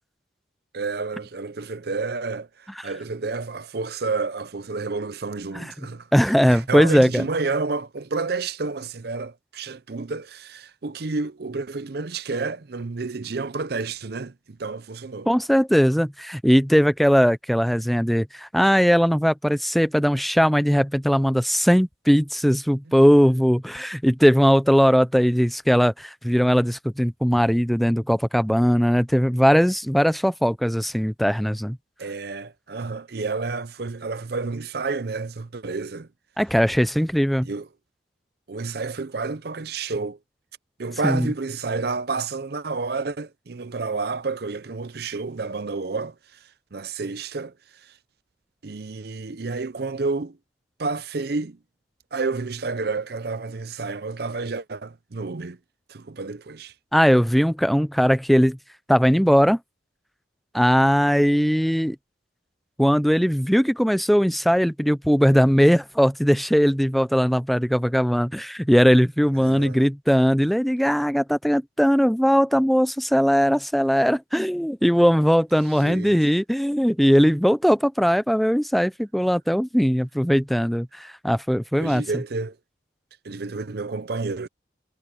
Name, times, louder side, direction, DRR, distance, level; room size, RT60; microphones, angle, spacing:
voice 1, 0.7-6.1 6.5-15.3 22.9-23.0 32.0-36.1 37.4-37.7 38.5-40.2 40.8-47.9 48.6-50.4 50.8-51.6 52.1-55.6 55.9-56.7 69.4-69.8 75.8-76.2 81.8-82.6 83.2-84.5, right 4 dB, 55° right, 0.6 m, -30 dB
voice 2, 6.1-7.2 15.3-31.8 36.4-37.5 41.0-41.3 56.9-58.6 58.9-59.6 60.5-62.0 62.8-82.0, equal, ahead, 0.4 m, -19 dB
head